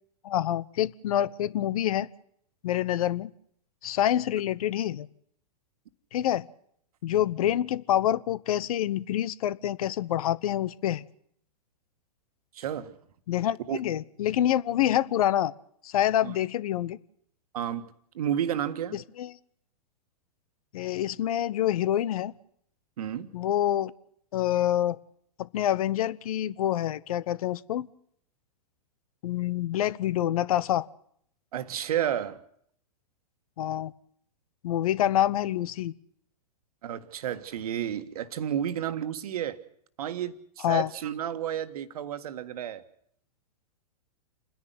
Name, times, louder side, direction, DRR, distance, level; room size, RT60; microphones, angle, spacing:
voice 1, 0.2-2.1 2.6-3.3 3.8-5.1 6.1-6.5 7.0-11.0 13.3-15.5 15.8-17.0 18.9-19.3 20.7-22.3 23.3-23.9 24.3-25.0 25.4-27.9 29.2-30.9 33.6-33.9 34.6-35.9 40.6-40.9, left 12 dB, 65° left, 1.0 m, -27 dB
voice 2, 12.5-13.0 13.7-13.8 16.2-16.3 17.5-17.8 18.1-19.0 23.0-23.3 31.5-32.4 36.8-39.6 40.0-42.8, right 10 dB, 65° right, 1.6 m, -31 dB
28.5 x 10.5 x 9.5 m
hypercardioid pair, 115°, 20 cm